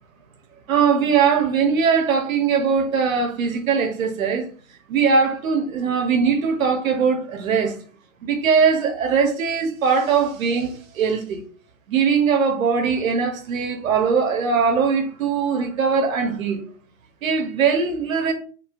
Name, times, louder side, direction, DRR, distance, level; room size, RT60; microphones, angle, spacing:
voice 1, 0.7-4.5 4.9-7.7 8.2-11.4 11.9-16.6 17.2-18.3, right 6 dB, 75° right, 0.9 m, -20 dB
3.7 x 2.4 x 2.3 m
hypercardioid pair, 160°, 41 cm